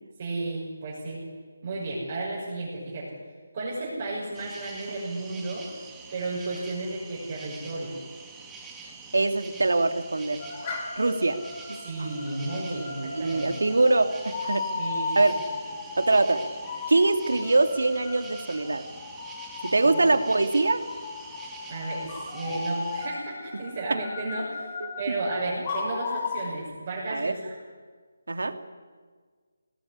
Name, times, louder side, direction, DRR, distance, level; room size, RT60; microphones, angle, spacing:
voice 1, 0.2-1.2 1.6-3.1 3.5-5.7 6.1-8.0 11.8-13.5 14.8-15.2 19.8-20.0 21.7-27.5, right 2 dB, 25° right, -6 dB, 6.3 m, -33 dB
sound 1, 4.3-23.1, right 4 dB, 5° right, 1.4 m, -46 dB
voice 2, 9.1-10.4 11.0-11.4 11.7-11.8 12.7-14.7 15.1-15.4 16.0-16.4 16.9-18.8 19.6-20.8 23.5-23.6 24.8-25.2 25.5-25.6 27.1-27.3 28.3-28.6, right 2 dB, 85° right, 8 dB, 2.7 m, -23 dB
sound 2, 10.4-26.5, left 4 dB, 20° left, 3.4 m, -36 dB
25.0 x 20.5 x 9.8 m, 1.5 s
hypercardioid pair, 180°, 0 cm